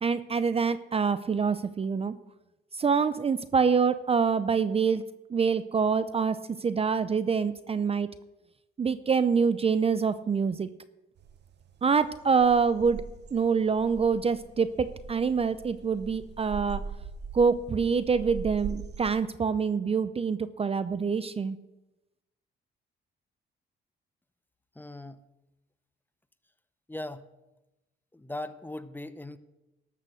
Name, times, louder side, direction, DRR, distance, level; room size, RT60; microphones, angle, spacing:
voice 1, 0.0-2.1 2.7-5.0 5.3-8.1 8.8-10.7 11.8-13.0 13.3-16.8 17.3-21.6, right 5 dB, 30° right, 14 dB, 0.5 m, -26 dB
sound 1, 11.2-19.1, right 6 dB, 60° right, 0.9 m, -42 dB
voice 2, 24.7-25.2 26.9-27.3 28.1-29.4, left 1 dB, 10° left, 12 dB, 0.7 m, -39 dB
12.5 x 6.7 x 6.3 m, 0.98 s
cardioid pair, 90°, 20 cm